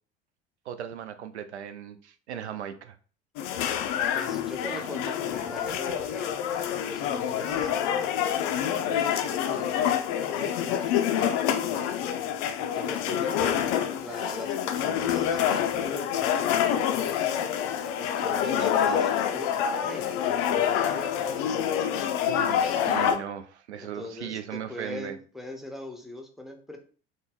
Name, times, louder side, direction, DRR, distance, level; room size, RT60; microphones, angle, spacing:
voice 1, 0.7-3.0 22.2-25.2, right 9 dB, 75° right, 0.5 m, -37 dB
sound 1, 3.4-23.2, left 9 dB, 45° left, 0.5 m, -27 dB
voice 2, 4.1-6.5 6.8-8.1 8.6-12.0 12.6-13.6 14.0-17.4 18.0-20.2 20.5-21.7 23.8-26.8, left 1 dB, ahead, 0.6 m, -41 dB
3.9 x 2.1 x 3.6 m
figure-of-eight pair, 65°, 34 cm